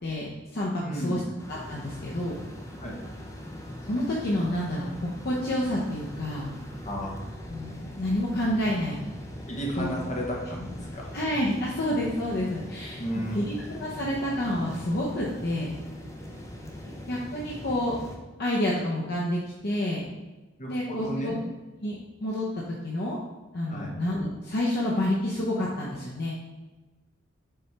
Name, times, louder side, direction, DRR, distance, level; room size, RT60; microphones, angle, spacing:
voice 1, 0.0-1.2 1.5-2.4 3.8-6.5 7.5-9.1 9.8-9.9 11.1-13.0 13.3-15.7 17.1-18.0 18.4-20.0 20.7-21.3 21.8-21.9 22.2-23.2 23.5-26.3, left 1 dB, 55° left, -4 dB, 0.8 m, -29 dB
voice 2, 0.8-1.2 2.8-3.0 6.8-7.2 9.5-11.1 13.0-13.6 20.6-21.4 23.7-23.9, equal, 35° left, -2 dB, 1.3 m, -33 dB
sound 1, 1.4-18.2, left 1 dB, 15° left, 0.8 m, -41 dB
6.8 x 4.2 x 3.4 m, 1.1 s
head